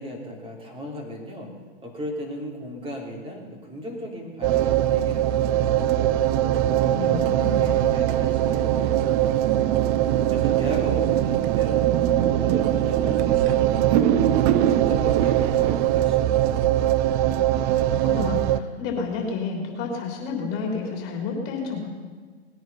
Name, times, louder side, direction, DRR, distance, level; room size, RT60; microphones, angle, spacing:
voice 1, 0.0-1.5 1.8-5.7 5.9-6.1 6.4-9.8 10.3-11.9 12.2-16.8, equal, 15° right, 0 dB, 3.2 m, -36 dB
sound 1, 4.4-18.6, right 12 dB, 35° right, 0.5 m, -21 dB
voice 2, 6.9-7.7 17.8-21.8, left 4 dB, 40° left, 0 dB, 3.4 m, -30 dB
19.5 x 9.4 x 5.6 m, 1.5 s
hypercardioid pair, 130°, 33 cm